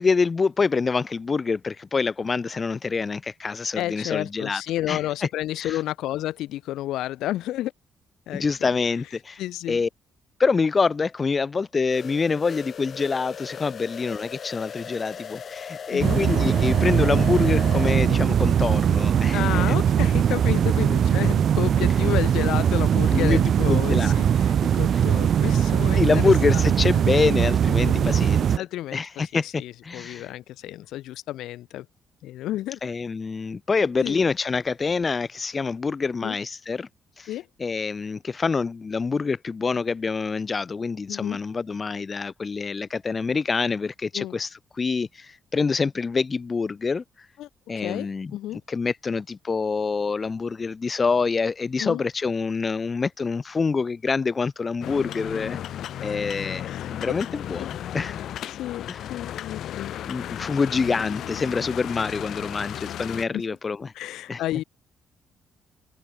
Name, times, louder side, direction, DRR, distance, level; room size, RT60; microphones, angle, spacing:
voice 1, 0.0-4.6 4.9-5.0 5.6-5.8 8.3-9.4 9.7-9.9 10.4-19.8 23.1-24.2 26.0-28.5 28.9-30.3 32.8-36.9 37.2-37.3 37.6-47.0 47.7-55.6 56.0-57.7 57.9-58.2 58.9-59.0 60.1-63.9 64.3-64.4, left 4 dB, 30° left, 0.6 m, -26 dB
voice 2, 3.7-7.7 8.3-8.7 9.4-9.8 15.9-16.2 19.3-26.7 27.8-28.2 28.6-31.9 32.2-32.8 34.0-34.2 36.2-36.4 37.3-37.5 41.1-41.4 44.1-44.3 47.4-47.5 47.8-48.6 51.8-52.0 56.6-57.1 57.6-57.7 58.5-59.9 63.3-63.4 63.9-64.6, left 14 dB, 90° left, 6.7 m, -31 dB
sound 1, 11.9-18.1, left 7 dB, 45° left, 2.1 m, -37 dB
sound 2, 16.0-28.6, right 8 dB, 55° right, 0.6 m, -20 dB
sound 3, 54.8-63.3, left 11 dB, 70° left, 1.7 m, -34 dB
open air
cardioid pair, 115°, 0 cm